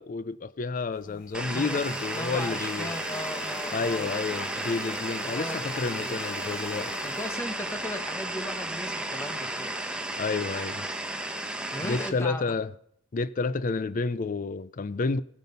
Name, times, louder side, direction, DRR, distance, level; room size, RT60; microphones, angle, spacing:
voice 1, 0.0-2.9 3.7-6.9 10.2-10.9 11.8-12.7 13.1-15.2, left 4 dB, 40° left, 0.4 m, -30 dB
sound 1, 0.9-7.8 8.6-8.9, left 4 dB, 85° left, 2.9 m, -43 dB
voice 2, 1.0-4.1 5.2-6.2 7.0-10.0 11.7-12.5, left 1 dB, 15° left, 1.2 m, -38 dB
sound 2, 1.3-12.1, right 1 dB, 5° right, 0.9 m, -33 dB
16.5 x 9.3 x 5.4 m
head